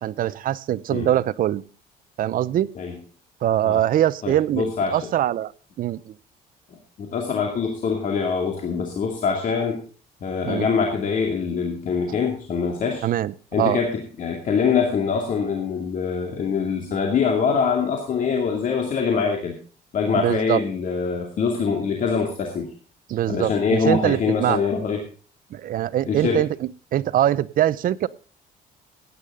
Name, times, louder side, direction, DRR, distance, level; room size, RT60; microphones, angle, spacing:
voice 1, 0.0-1.6 2.2-2.7 3.4-5.5 5.8-6.2 10.5-10.7 13.0-13.3 13.6-13.8 20.1-20.6 23.1-24.6 25.5-26.5 26.9-28.1, right 12 dB, 55° right, 18 dB, 0.7 m, -22 dB
voice 2, 4.2-5.0 6.7-9.8 10.2-13.0 13.5-19.6 19.9-22.7 23.3-25.0 26.1-26.4, left 5 dB, 50° left, 2 dB, 2.5 m, -24 dB
16.5 x 10.0 x 3.7 m, 0.39 s
cardioid pair, 110°, 17 cm